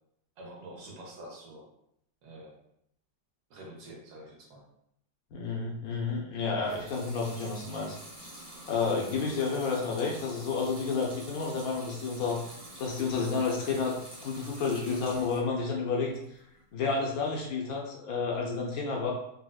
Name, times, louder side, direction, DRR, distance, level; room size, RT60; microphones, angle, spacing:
voice 1, 0.4-1.6 2.2-2.6 3.5-4.6 6.7-6.8, right 1 dB, 80° right, -2 dB, 1.4 m, -46 dB
voice 2, 5.3-8.0 8.7-12.5 12.8-16.1 16.7-19.1, left 4 dB, 70° left, -2 dB, 1.0 m, -30 dB
Water tap faucet / Sink (filling or washing) / Liquid, 6.6-15.5 15.9-16.6, equal, 5° right, 0.8 m, -47 dB
4.0 x 2.4 x 2.3 m, 0.75 s
omnidirectional pair, 1.7 m